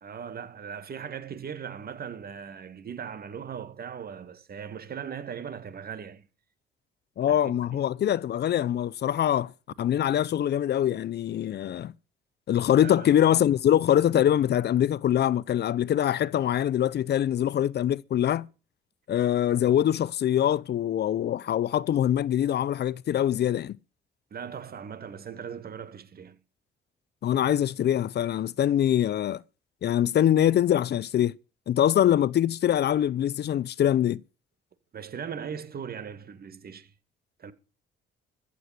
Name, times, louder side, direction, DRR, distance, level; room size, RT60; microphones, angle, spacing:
voice 1, 0.0-6.3 7.3-7.9 12.8-13.2 24.3-26.4 34.9-36.9 37.4-37.5, right 7 dB, 50° right, 2.1 m, -39 dB
voice 2, 7.2-9.5 9.8-11.9 12.5-18.5 19.1-23.8 27.2-29.4 29.8-31.4 31.7-34.2, left 10 dB, 55° left, 0.6 m, -24 dB
14.5 x 8.5 x 5.9 m
cardioid pair, 90°, 20 cm